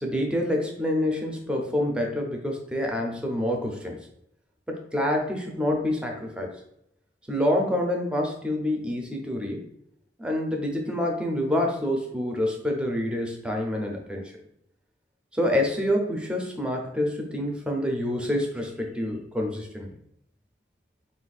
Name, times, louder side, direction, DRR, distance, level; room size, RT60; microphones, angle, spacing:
voice 1, 0.0-4.0 4.7-6.6 7.3-9.6 10.2-14.3 15.3-19.9, left 1 dB, 5° right, 1 dB, 0.6 m, -27 dB
4.0 x 2.5 x 4.0 m, 0.74 s
head